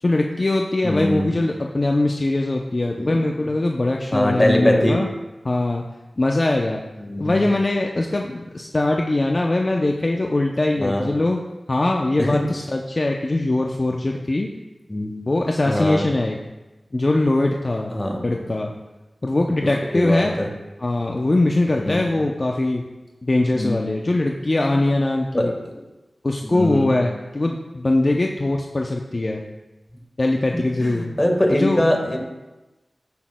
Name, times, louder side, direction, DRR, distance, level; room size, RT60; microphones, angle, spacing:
voice 1, 0.0-5.1 5.4-5.8 6.2-6.8 7.2-11.4 11.7-14.5 15.3-16.4 16.9-17.9 18.2-18.7 19.2-20.4 20.8-22.8 23.2-25.5 26.2-29.4 30.2-31.1 31.5-31.8, left 2 dB, 40° left, 1 dB, 0.5 m, -21 dB
voice 2, 0.8-1.3 3.0-3.2 4.1-5.0 7.0-7.4 10.8-11.1 12.2-12.3 14.9-15.1 15.6-16.0 17.9-18.2 19.9-20.5 21.8-22.0 23.5-23.8 25.3-25.8 26.4-26.9 30.8-32.2, left 1 dB, 15° left, 1 dB, 1.5 m, -22 dB
15.0 x 6.1 x 2.2 m, 1.1 s
wide cardioid pair, 70°, 0 cm